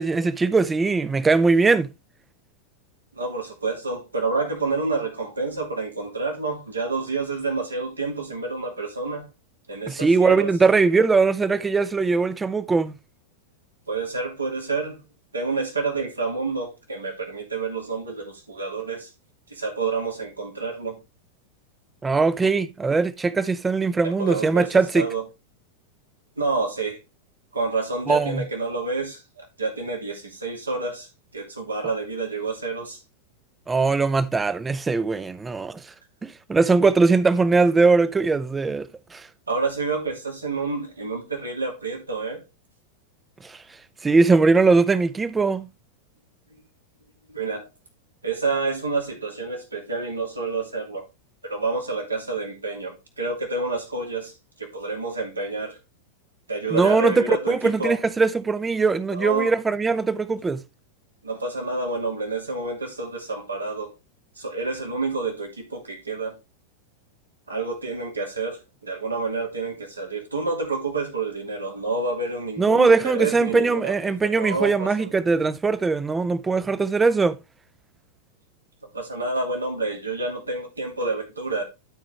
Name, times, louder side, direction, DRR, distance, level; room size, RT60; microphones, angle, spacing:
voice 1, 0.0-1.9 9.9-12.9 22.0-25.1 28.1-28.4 33.7-35.9 36.2-39.3 43.4-43.6 44.0-45.7 56.7-60.6 72.6-77.4, right 4 dB, 15° right, 0.7 m, -20 dB
voice 2, 3.2-9.3 9.7-10.5 13.9-15.0 15.3-19.1 19.5-21.0 24.0-24.7 24.9-25.2 26.4-27.0 27.5-31.1 31.3-33.0 39.5-42.4 47.3-47.7 48.2-51.1 51.4-54.3 54.6-55.8 56.5-58.0 59.1-59.5 61.2-63.9 64.4-66.3 67.5-75.1 78.9-81.6, right 3 dB, 80° right, 2.7 m, -28 dB
12.5 x 4.9 x 3.2 m
figure-of-eight pair, 90°, 0 cm